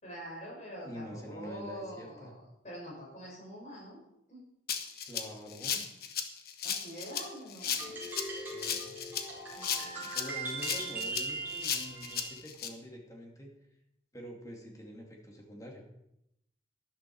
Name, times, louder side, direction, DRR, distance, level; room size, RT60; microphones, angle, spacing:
voice 1, 0.0-4.0 4.3-4.4 6.6-8.0 9.5-10.1 10.6-10.7, equal, 40° left, -3 dB, 6.4 m, -45 dB
voice 2, 0.8-2.3 5.1-5.8 8.5-9.0 10.1-13.5 14.1-15.8, equal, 20° left, 0 dB, 2.5 m, -46 dB
Rattle (instrument), 4.7-12.7, left 8 dB, 55° left, 1.2 m, -35 dB
sound 1, 7.6-12.4, right 3 dB, 10° right, 4.6 m, -40 dB
12.5 x 12.0 x 4.6 m, 0.83 s
head